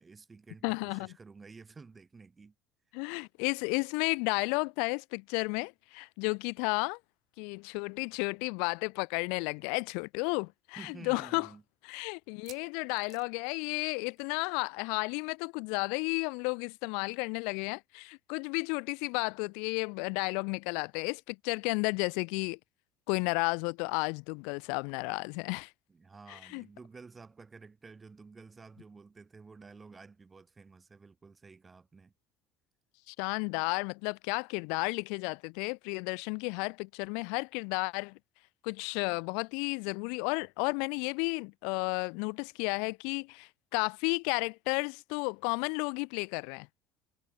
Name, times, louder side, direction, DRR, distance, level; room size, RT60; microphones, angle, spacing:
voice 1, 0.0-2.5 10.8-11.6 25.9-32.1, right 4 dB, 20° right, 3.5 m, -52 dB
voice 2, 0.6-1.1 2.9-7.0 7.4-11.5 11.8-22.6 23.1-25.7 26.3-26.6 33.1-38.2 38.6-46.7, left 37 dB, 80° left, 0.8 m, -33 dB
sound 1, 9.6-9.7 10.0-10.1 10.7-10.8 12.2-14.4 14.6-14.9 15.1-15.2 16.7-16.8, right 12 dB, 55° right, 5.6 m, -57 dB
supercardioid pair, 105°, 0 cm